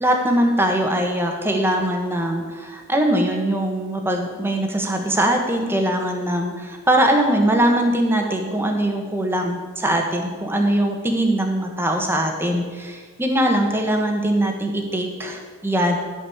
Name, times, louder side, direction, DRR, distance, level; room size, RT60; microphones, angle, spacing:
voice 1, 0.0-16.0, right 1 dB, 10° right, 2 dB, 1.4 m, -21 dB
12.5 x 5.4 x 7.2 m, 1.5 s
head